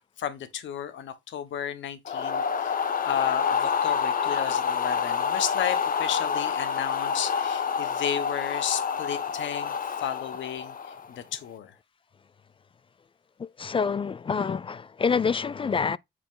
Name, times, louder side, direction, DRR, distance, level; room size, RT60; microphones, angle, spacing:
voice 1, 0.0-11.7, left 9 dB, 70° left, 1.3 m, -33 dB
sound 1, 2.0-11.1, left 7 dB, 45° left, 1.1 m, -28 dB
voice 2, 13.6-16.0, left 5 dB, 25° left, 0.4 m, -26 dB
8.2 x 4.4 x 3.8 m
cardioid pair, 90°, 20 cm